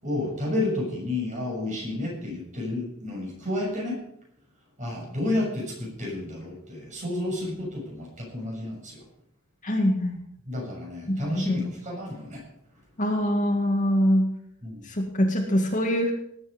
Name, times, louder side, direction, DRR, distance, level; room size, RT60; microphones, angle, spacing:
voice 1, 0.0-4.0 4.8-9.0 10.5-12.4 14.6-14.8, left 1 dB, 35° right, -1 dB, 6.9 m, -31 dB
voice 2, 9.6-10.2 11.1-11.7 13.0-14.3 14.9-16.1, equal, 35° left, 2 dB, 2.2 m, -24 dB
19.5 x 8.8 x 5.3 m, 0.73 s
head